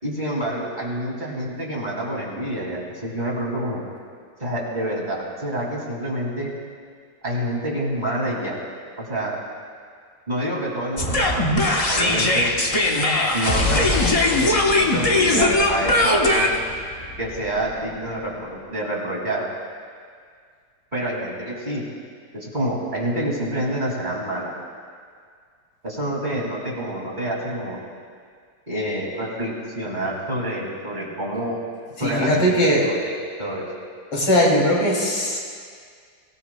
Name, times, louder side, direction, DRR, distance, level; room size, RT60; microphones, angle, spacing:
voice 1, 0.0-3.8 4.4-6.5 7.2-8.6 9.0-9.4 10.3-11.5 11.9-12.5 13.3-16.5 17.2-19.5 20.9-21.8 22.3-24.5 25.8-27.8 28.7-31.6 32.0-33.7, right 1 dB, 20° right, -4 dB, 2.4 m, -27 dB
sound 1, 11.0-18.1, left 2 dB, 30° left, 0.7 m, -20 dB
voice 2, 32.0-32.8 34.1-35.4, equal, 85° left, -3 dB, 3.6 m, -19 dB
23.5 x 17.5 x 2.2 m, 2.1 s
omnidirectional pair, 2.2 m